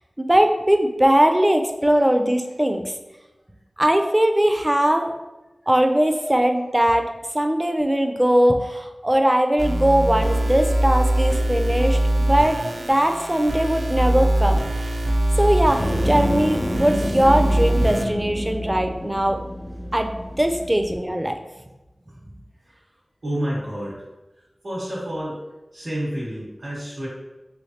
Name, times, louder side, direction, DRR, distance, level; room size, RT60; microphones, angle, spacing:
voice 1, 0.2-2.9 3.8-5.1 5.7-12.6 12.9-14.6 15.4-19.4 19.9-20.1 20.4-21.4, right 1 dB, 15° right, 5 dB, 0.4 m, -20 dB
sound 1, 9.6-18.1, right 1 dB, 85° right, 0.3 m, -23 dB
sound 2, 15.8-21.0, equal, 65° left, 0.5 m, -28 dB
voice 2, 23.2-24.0 24.6-25.4 25.7-27.1, equal, 60° right, -6 dB, 1.0 m, -29 dB
3.3 x 3.2 x 2.8 m, 1.1 s
wide cardioid pair, 60°, 0 cm